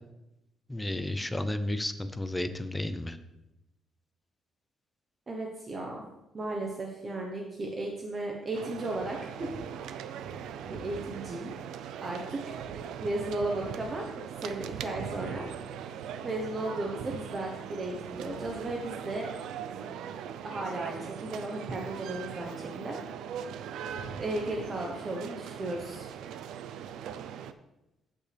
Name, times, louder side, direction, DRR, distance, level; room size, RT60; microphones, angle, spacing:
voice 1, 0.7-3.2, left 1 dB, 10° left, 10 dB, 0.5 m, -32 dB
voice 2, 5.3-6.1 6.3-9.5 10.5-11.5 12.0-12.6 13.0-14.1 14.4-15.5 16.2-19.3 19.7-20.1 20.4-23.0 24.2-26.2, right 2 dB, 25° right, 0 dB, 1.0 m, -35 dB
sound 1, 8.5-27.5, right 8 dB, 90° right, 0.5 m, -40 dB
15.0 x 5.3 x 3.4 m, 0.94 s
cardioid pair, 155°, 0 cm